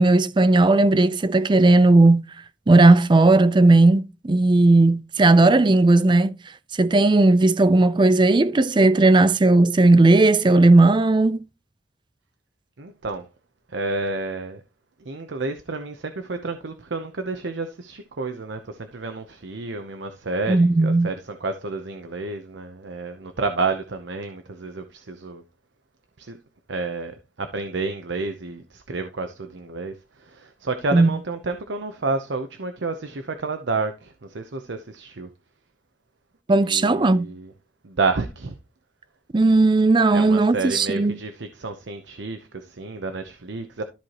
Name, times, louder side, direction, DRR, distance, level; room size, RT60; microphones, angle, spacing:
voice 1, 0.0-2.3 2.7-6.3 6.8-11.4 20.5-21.1 30.9-31.1 36.5-37.3 39.3-41.1, right 2 dB, 25° right, 0.4 m, -16 dB
voice 2, 12.8-13.3 13.7-14.6 15.0-25.4 26.2-26.4 26.7-35.3 36.5-37.5 37.8-38.6 40.1-43.8, right 3 dB, 75° right, 0.8 m, -30 dB
13.5 x 4.8 x 2.9 m
head